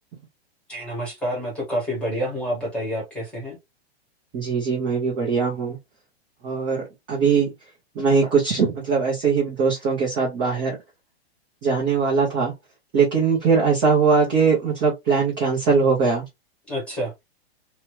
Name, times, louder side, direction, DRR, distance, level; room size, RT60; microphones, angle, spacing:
voice 1, 0.7-3.6 16.7-17.1, equal, 5° left, 1.0 m, -28 dB
voice 2, 4.3-5.8 6.4-10.8 11.6-12.5 12.9-16.2, right 5 dB, 15° right, 0.5 m, -21 dB
2.8 x 2.2 x 3.0 m
hypercardioid pair, 170°, 32 cm